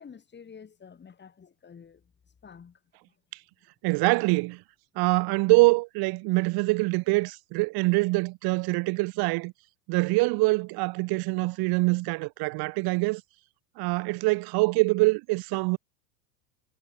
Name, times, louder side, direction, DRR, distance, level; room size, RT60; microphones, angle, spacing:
voice 1, 0.0-2.8, left 6 dB, 20° left, 6.5 m, -49 dB
voice 2, 3.8-4.6 5.0-9.5 9.9-13.2 13.8-15.8, right 25 dB, 50° right, 2.7 m, -24 dB
hypercardioid pair, 105°, 48 cm